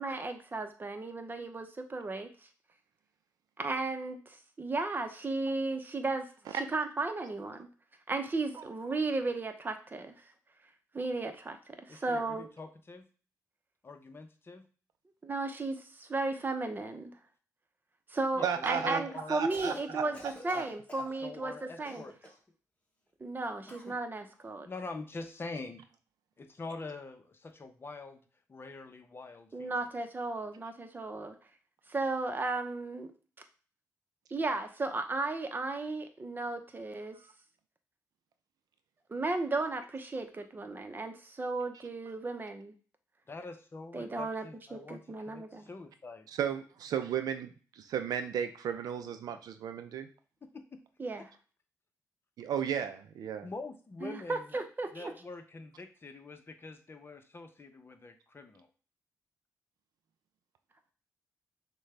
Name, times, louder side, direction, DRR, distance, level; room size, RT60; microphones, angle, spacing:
voice 1, 0.0-2.5 3.6-7.7 8.1-10.3 10.9-12.5 15.2-17.1 18.1-22.0 23.2-24.7 29.5-31.3 31.9-33.1 34.3-37.2 39.1-42.7 43.9-44.4 44.7-45.7 51.0-51.3 54.0-55.1, right 3 dB, 30° right, 7 dB, 0.8 m, -35 dB
voice 2, 11.9-13.1 13.8-14.7 18.3-20.2 21.2-22.2 24.7-25.8 26.4-28.2 28.5-29.7 43.3-46.3 50.5-50.8 53.4-54.5 54.9-58.7, left 3 dB, 35° left, 7 dB, 0.7 m, -45 dB
voice 3, 18.4-19.0 19.3-20.0 20.5-20.7 46.4-50.1 52.4-53.5, right 8 dB, 80° right, 9 dB, 0.5 m, -34 dB
Cough, 19.3-19.9 20.1-21.1 21.8-22.5 23.7-24.0, left 1 dB, 20° left, 1.2 m, -49 dB
6.3 x 2.3 x 3.3 m, 0.38 s
cardioid pair, 70°, 6 cm